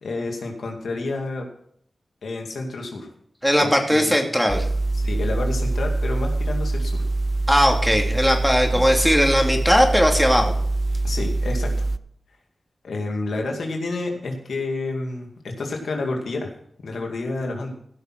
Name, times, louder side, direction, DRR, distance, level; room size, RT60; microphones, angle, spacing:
voice 1, 0.0-1.5 2.2-3.1 3.6-4.2 4.9-7.1 8.7-8.9 11.0-11.9 12.8-15.3 15.6-16.5 16.8-17.7, left 2 dB, 85° left, 2 dB, 2.2 m, -29 dB
voice 2, 3.4-4.7 7.5-10.5, equal, ahead, 2 dB, 2.8 m, -19 dB
sound 1, 4.5-12.0, right 2 dB, 20° right, 0.5 m, -24 dB
15.5 x 6.4 x 6.2 m, 0.65 s
cardioid pair, 50°, 0 cm